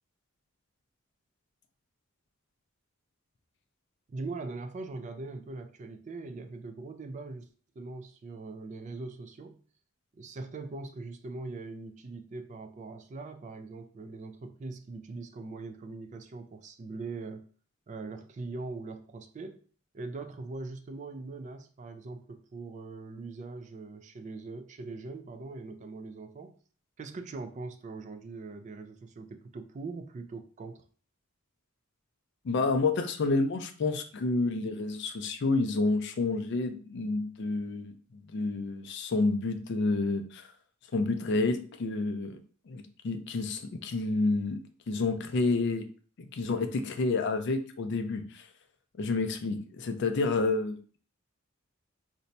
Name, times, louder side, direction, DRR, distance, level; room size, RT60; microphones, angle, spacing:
voice 1, 4.1-7.5 7.8-9.6 10.1-17.5 17.9-19.6 19.9-26.6 27.0-30.8, right 3 dB, 35° right, 8 dB, 0.3 m, -41 dB
voice 2, 32.4-40.5 40.9-42.4 42.7-44.6 44.9-45.9 46.2-48.5 49.0-51.0, left 3 dB, 55° left, 8 dB, 0.4 m, -29 dB
2.6 x 2.2 x 4.0 m, 0.41 s
head